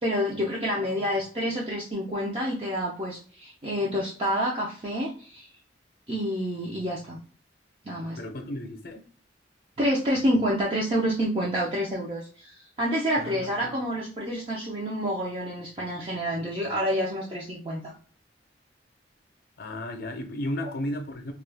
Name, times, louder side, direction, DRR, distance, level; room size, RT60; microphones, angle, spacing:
voice 1, 0.0-5.5 6.1-7.2 7.8-8.2 9.8-17.9, equal, 30° right, 0.6 m, -28 dB
voice 2, 8.2-9.0 13.2-13.7 19.6-21.3, left 1 dB, 55° left, 0.6 m, -34 dB
2.4 x 2.2 x 3.3 m
head